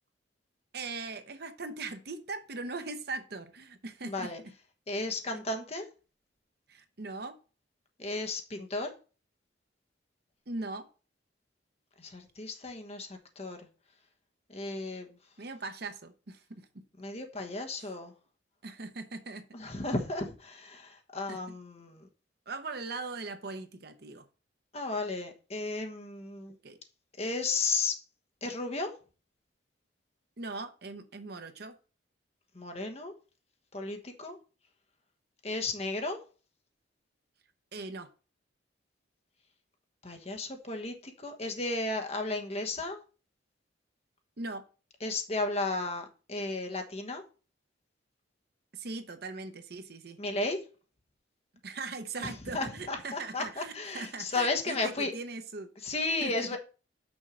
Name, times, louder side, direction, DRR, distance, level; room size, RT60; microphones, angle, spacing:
voice 1, 0.7-4.5 5.3-5.4 6.7-7.4 10.5-10.9 15.4-16.7 17.8-17.9 18.6-19.4 21.3-21.5 22.5-24.2 26.6-26.8 30.4-31.8 37.7-38.1 44.4-44.6 48.7-50.2 51.6-55.7 56.2-56.5, right 3 dB, 55° right, 8 dB, 0.9 m, -40 dB
voice 2, 4.0-4.4 4.9-5.9 8.0-8.9 12.0-13.6 14.5-15.1 17.0-18.1 19.5-22.1 24.7-26.5 27.2-27.9 28.4-28.9 32.5-33.1 33.7-34.4 35.4-36.2 40.0-43.0 45.0-47.2 50.2-50.6 52.2-55.1 55.8-56.6, left 3 dB, 35° left, 4 dB, 1.1 m, -34 dB
6.3 x 4.5 x 6.2 m, 0.36 s
head